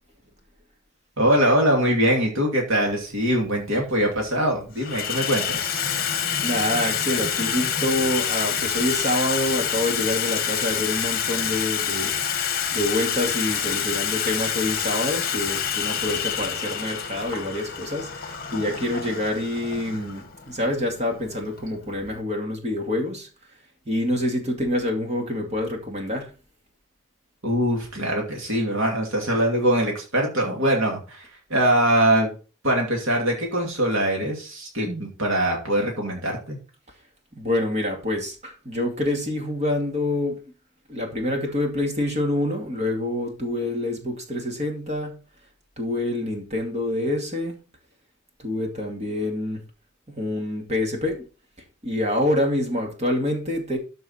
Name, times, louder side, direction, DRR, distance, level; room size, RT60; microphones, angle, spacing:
voice 1, 1.2-5.8 27.4-32.3 32.6-36.6, right 1 dB, 65° right, 0 dB, 2.6 m, -22 dB
Water tap faucet / Sink (filling or washing), 2.8-3.0 3.9-4.3 4.6-22.2, left 8 dB, 45° left, 1.5 m, -27 dB
voice 2, 6.4-12.2 12.7-23.3 23.9-26.3 37.3-40.4 40.9-45.2 45.8-47.6 48.4-49.6 50.1-51.2 51.8-53.8, left 1 dB, 30° right, 2 dB, 2.5 m, -26 dB
13.0 x 5.5 x 4.2 m, 0.35 s
head